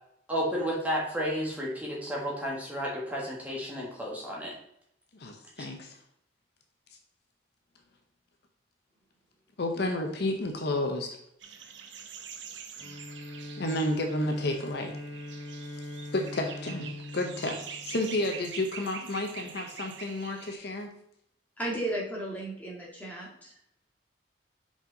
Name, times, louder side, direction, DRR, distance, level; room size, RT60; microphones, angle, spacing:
voice 1, 0.3-4.5, equal, 10° right, -3 dB, 1.5 m, -32 dB
voice 2, 5.1-6.0 9.6-11.2 13.6-15.0 16.1-20.9, left 1 dB, 55° left, 4 dB, 0.7 m, -31 dB
sound 1, 11.4-20.6, right 7 dB, 65° right, 0.7 m, -45 dB
Bowed string instrument, 12.8-18.6, left 1 dB, 80° left, 2.0 m, -42 dB
voice 3, 21.6-23.5, right 1 dB, 10° left, -4 dB, 1.9 m, -34 dB
5.3 x 5.1 x 3.8 m, 0.73 s
head